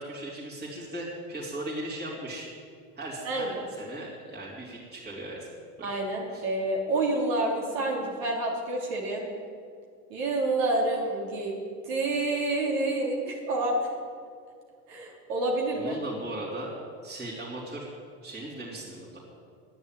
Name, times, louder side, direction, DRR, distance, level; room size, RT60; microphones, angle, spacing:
voice 1, 0.0-2.5 2.9-5.5 5.8-5.9 6.3-6.4 15.7-16.7 17.0-17.9 18.2-19.2, right 1 dB, 25° right, -6 dB, 3.2 m, -38 dB
voice 2, 5.8-9.3 10.1-11.6 11.8-13.8 14.9-16.0, right 2 dB, 80° right, -1 dB, 3.2 m, -28 dB
10.0 x 9.2 x 9.0 m, 2.2 s
supercardioid pair, 115°, 40 cm